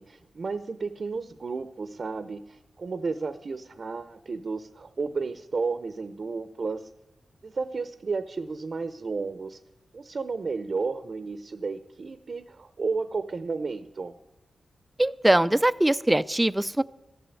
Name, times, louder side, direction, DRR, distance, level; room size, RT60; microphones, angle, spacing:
voice 1, 0.0-6.9 7.4-9.6 9.9-14.2, right 4 dB, 55° right, 12 dB, 0.7 m, -32 dB
voice 2, 15.0-16.8, right 1 dB, 15° right, 16 dB, 0.5 m, -22 dB
13.5 x 7.8 x 9.6 m, 0.96 s
cardioid pair, 70°, 0 cm